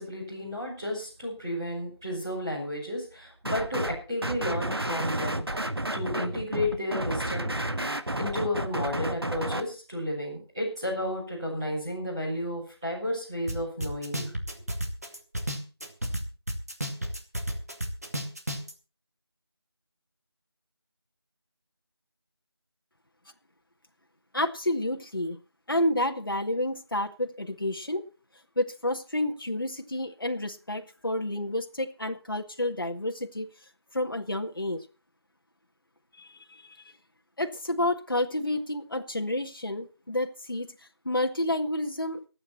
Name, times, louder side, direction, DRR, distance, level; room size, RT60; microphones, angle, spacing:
voice 1, 0.0-5.4 5.9-7.5 8.2-14.3, left 1 dB, 10° right, -9 dB, 4.7 m, -32 dB
sound 1, 3.5-4.0 4.2-9.6, right 1 dB, 65° right, 1.8 m, -31 dB
sound 2, 13.5-13.6 13.8-16.2 16.5-18.7, equal, 40° right, 2.5 m, -31 dB
voice 2, 24.3-25.4 25.7-28.0 28.6-33.5 33.9-34.9 36.2-36.9 37.4-40.8 41.1-42.2, left 1 dB, 55° left, 4 dB, 1.7 m, -30 dB
23.5 x 9.1 x 4.3 m, 0.34 s
figure-of-eight pair, 175°, 14 cm